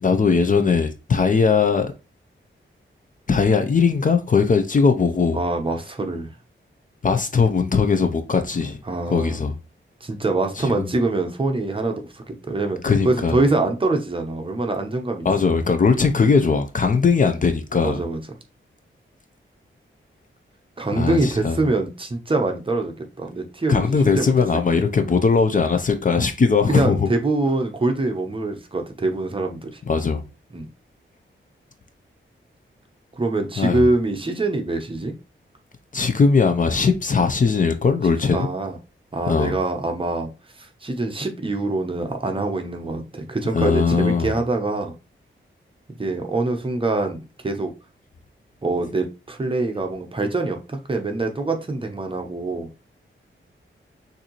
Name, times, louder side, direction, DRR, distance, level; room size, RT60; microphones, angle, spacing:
voice 1, 0.0-1.9 3.3-5.4 7.0-8.8 9.1-9.6 10.6-10.9 12.8-13.4 15.2-18.0 20.9-21.6 23.7-27.1 29.9-30.2 33.6-33.8 35.9-38.5 39.3-39.6 43.5-44.3, left 5 dB, 40° left, 0.6 m, -19 dB
voice 2, 5.3-6.3 8.9-9.4 10.0-12.8 13.0-15.6 17.8-18.2 20.8-24.3 24.7-24.8 26.7-29.8 30.5-30.7 33.2-35.1 38.3-38.8 39.1-40.3 40.6-44.9 46.0-47.7 48.6-52.7, right 2 dB, 25° right, 0.8 m, -24 dB
6.5 x 2.7 x 3.0 m
wide cardioid pair, 140°, 21 cm